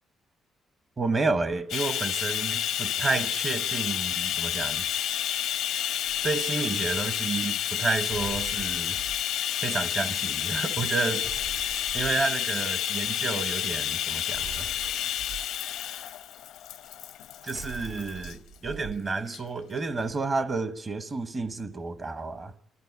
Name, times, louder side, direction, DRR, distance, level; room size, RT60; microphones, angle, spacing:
voice 1, 1.0-4.8 6.2-9.0 9.6-11.3 11.9-14.6 17.4-22.5, right 3 dB, 35° right, 1.1 m, -30 dB
Bathtub (filling or washing), 1.7-18.3 19.3-19.4 19.8-19.9, left 11 dB, 90° left, 0.8 m, -30 dB
sound 1, 8.1-9.2 11.2-12.2 14.3-15.4 17.5-19.0, right 7 dB, 85° right, 3.1 m, -42 dB
26.5 x 14.0 x 9.5 m
cardioid pair, 90°, 0 cm